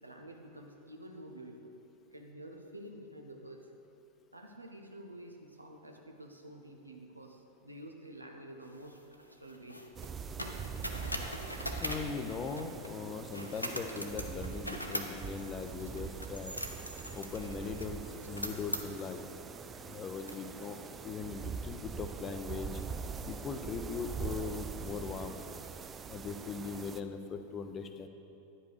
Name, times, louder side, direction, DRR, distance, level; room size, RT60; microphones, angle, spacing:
voice 1, 0.0-1.8 2.1-3.7 4.3-9.8, right 1 dB, 85° right, 2 dB, 0.8 m, -49 dB
sound 1, 8.7-12.9 13.3-19.2 19.8-19.9 20.3-20.9, equal, 90° left, 0.6 m, -42 dB
sound 2, 10.0-27.0, right 6 dB, 20° right, 0.3 m, -43 dB
voice 2, 11.8-16.6 17.1-19.2 19.8-20.8 21.0-22.8 23.3-25.4 26.1-28.1, left 5 dB, 25° left, 7 dB, 0.6 m, -40 dB
9.9 x 5.1 x 4.9 m, 2.9 s
figure-of-eight pair, 90°, 0 cm